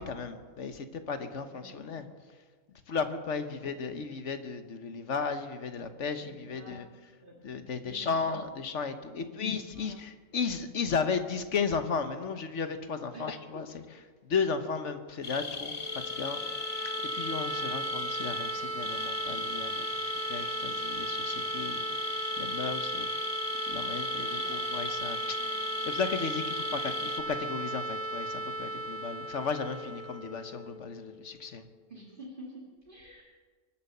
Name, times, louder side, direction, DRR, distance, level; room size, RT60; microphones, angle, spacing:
voice 1, 0.0-2.1 2.9-6.9 7.4-13.7 14.2-15.7 16.1-16.4 16.8-23.1 23.7-25.5 25.9-31.7, left 5 dB, 60° left, 9 dB, 1.3 m, -35 dB
voice 2, 1.5-2.0 3.5-3.6 6.2-6.8 7.2-7.4 7.8-8.4 9.1-9.5 9.8-9.9 13.1-13.3 13.7-13.8 24.1-24.7 31.9-33.2, right 1 dB, 35° right, -2 dB, 2.1 m, -49 dB
sound 1, 15.2-27.2, left 4 dB, 25° left, 0.8 m, -37 dB
sound 2, 15.7-31.5, right 2 dB, 15° right, 0.6 m, -36 dB
23.5 x 8.7 x 6.7 m, 1.5 s
omnidirectional pair, 1.5 m